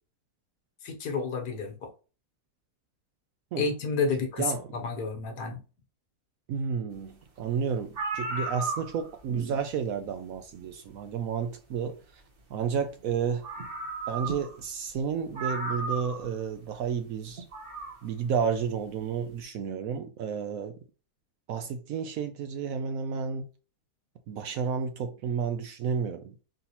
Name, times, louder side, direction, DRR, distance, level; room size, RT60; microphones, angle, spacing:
voice 1, 0.8-1.9 3.6-5.6, left 4 dB, 80° left, 1.6 m, -30 dB
voice 2, 4.4-4.9 6.5-12.2 12.5-13.5 14.1-17.4 18.0-20.8 21.5-23.5 24.3-26.3, right 6 dB, 70° right, 0.9 m, -31 dB
sound 1, 7.5-7.6 7.8-9.2 10.6-10.7 13.0-13.1 13.4-14.6 14.9-15.0 15.3-16.3 17.4-18.0, right 3 dB, 40° right, 0.9 m, -34 dB
4.0 x 3.9 x 2.9 m
omnidirectional pair, 1.7 m